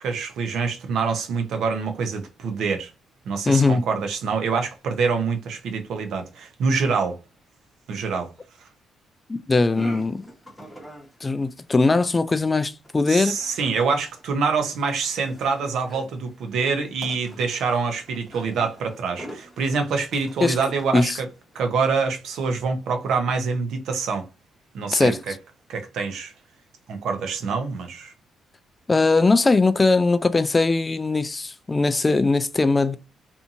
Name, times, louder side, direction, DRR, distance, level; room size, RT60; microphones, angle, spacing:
voice 1, 0.0-2.9 3.2-7.2 7.9-8.3 13.1-21.3 21.5-24.3 24.7-25.3 25.7-26.3 26.9-28.1, right 5 dB, 75° right, 0.6 m, -25 dB
voice 2, 3.5-3.8 9.3-10.2 11.2-13.4 20.4-20.6 20.9-21.2 24.9-25.2 28.9-33.0, left 3 dB, 25° left, 0.3 m, -20 dB
sound 1, 9.7-21.6, right 1 dB, 5° left, 0.9 m, -44 dB
2.7 x 2.5 x 2.5 m
cardioid pair, 90°, 0 cm